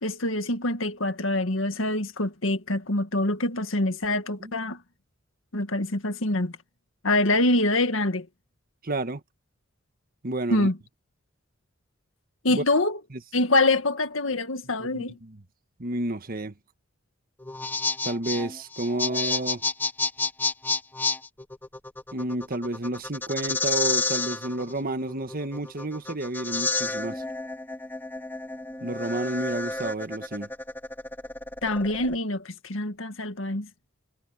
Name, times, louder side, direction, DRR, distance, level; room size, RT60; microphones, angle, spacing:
voice 1, 0.0-4.8 5.5-6.6 7.0-8.3 10.5-10.8 12.4-13.0 13.3-15.1 31.6-33.7, left 2 dB, 80° left, 1.9 m, -25 dB
voice 2, 8.8-9.2 10.2-10.7 12.5-12.6 13.1-13.2 14.9-15.4 15.8-16.5 18.0-19.6 22.1-27.2 28.8-30.5, right 2 dB, 45° right, 1.5 m, -30 dB
sound 1, 17.4-32.2, left 3 dB, 10° left, 2.3 m, -30 dB
head